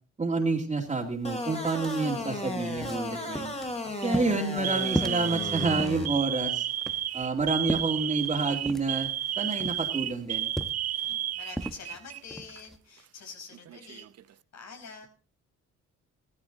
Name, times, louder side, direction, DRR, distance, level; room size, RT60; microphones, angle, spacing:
voice 1, 0.2-3.5 4.0-6.7 7.1-9.1 9.4-10.5, right 3 dB, 20° right, -2 dB, 2.5 m, -29 dB
sound 1, 0.9-1.0 1.3-12.8, equal, ahead, 1.0 m, -39 dB
sound 2, 1.2-6.1, left 2 dB, 20° left, 3.5 m, -35 dB
Alarm, 1.7-2.2 3.1-3.4 3.9-4.1 4.6-12.2 12.5-12.6 13.5-14.2, right 12 dB, 55° right, 0.7 m, -32 dB
voice 2, 11.1-15.1, left 5 dB, 60° left, 5 dB, 5.1 m, -46 dB
15.5 x 14.0 x 3.9 m, 0.34 s
cardioid pair, 90°, 30 cm